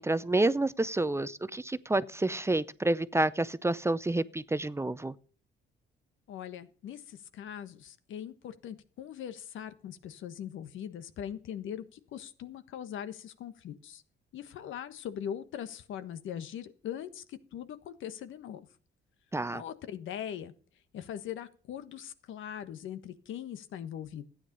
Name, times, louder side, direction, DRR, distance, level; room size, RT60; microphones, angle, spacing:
voice 1, 0.0-5.1 19.3-19.6, right 2 dB, 15° right, 0.6 m, -29 dB
voice 2, 6.3-14.0 14.3-18.7 19.5-20.5 20.9-24.2, left 9 dB, 80° left, 1.3 m, -41 dB
13.5 x 9.6 x 5.3 m
cardioid pair, 90°, 20 cm